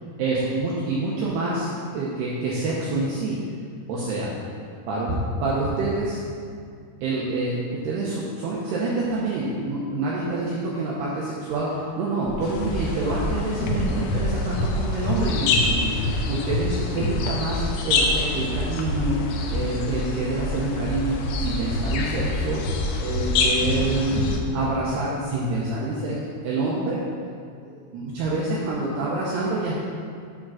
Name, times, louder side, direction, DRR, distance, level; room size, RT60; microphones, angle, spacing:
voice 1, 0.2-3.4 3.9-4.3 4.9-5.1 5.4-6.2 7.0-19.2 19.5-22.6 23.0-27.0 27.9-29.7, right 2 dB, 75° right, -6 dB, 2.4 m, -27 dB
sound 1, 12.3-12.4 12.6-12.8 13.1-15.3 15.5-15.7 16.0-16.2 16.5-16.7 17.0-17.2 17.4-22.9 23.1-23.8 24.1-24.3, left 1 dB, 40° left, 2.2 m, -27 dB
sound 2, 12.4-24.4, left 4 dB, 85° left, 3.1 m, -29 dB
9.8 x 3.8 x 6.2 m, 2.2 s
omnidirectional pair, 5.7 m